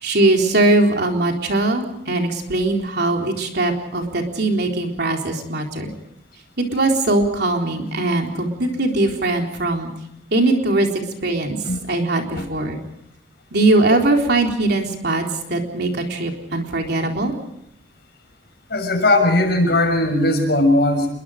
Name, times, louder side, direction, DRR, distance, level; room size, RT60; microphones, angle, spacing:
voice 1, 0.0-5.9 6.6-9.9 10.3-11.6 11.9-12.8 13.5-17.4, right 2 dB, 65° right, 2 dB, 3.9 m, -20 dB
voice 2, 18.7-21.1, left 1 dB, 65° left, 4 dB, 6.6 m, -18 dB
28.0 x 22.5 x 5.1 m, 0.78 s
head